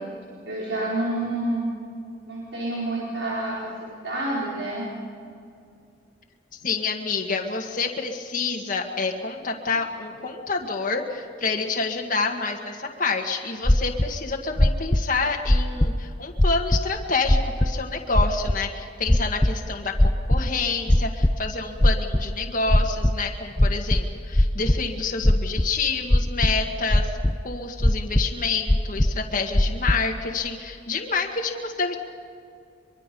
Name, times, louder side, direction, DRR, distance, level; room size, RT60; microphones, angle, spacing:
voice 1, 0.5-1.7 2.3-4.9 9.7-9.8, right 1 dB, 85° right, -6 dB, 4.6 m, -28 dB
voice 2, 6.6-27.1 27.4-32.0, left 4 dB, 45° left, 2 dB, 1.8 m, -28 dB
sound 1, 13.7-14.1 14.6-15.0 15.5-16.0 16.4-16.8 17.3-17.7 18.2-18.6 19.1-19.5 20.0-20.5 20.9-21.3 21.8-22.3 22.7-23.1 23.6-24.8 25.2-25.7 26.1-26.6 26.9-27.4 27.8-28.3 28.7-29.2 29.5-30.0, left 1 dB, 15° left, 0.6 m, -19 dB
24.0 x 23.5 x 5.4 m, 2.4 s
head